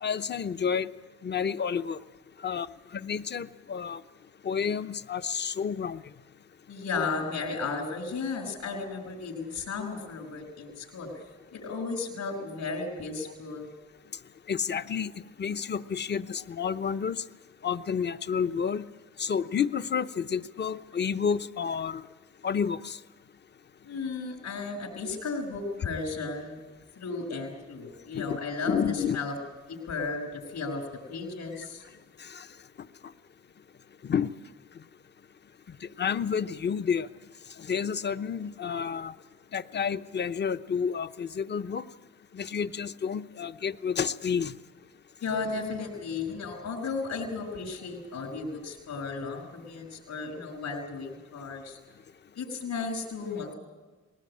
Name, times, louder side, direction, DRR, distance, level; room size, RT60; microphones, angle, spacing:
voice 1, 0.0-0.9 1.2-2.0 2.4-2.7 2.9-4.0 4.4-6.0 14.5-17.2 17.6-18.9 19.2-22.0 22.4-23.0 28.1-28.4 28.7-29.2 32.2-32.5 34.0-34.3 35.8-37.1 37.6-39.1 39.5-41.8 42.3-44.5, left 7 dB, 35° left, 12 dB, 0.9 m, -30 dB
voice 2, 6.7-11.2 11.5-13.7 23.9-26.6 27.0-29.3 29.7-31.8 45.2-51.8 52.3-53.6, left 4 dB, 65° left, 0 dB, 5.5 m, -34 dB
21.0 x 18.5 x 8.7 m, 1.3 s
cardioid pair, 90°, 30 cm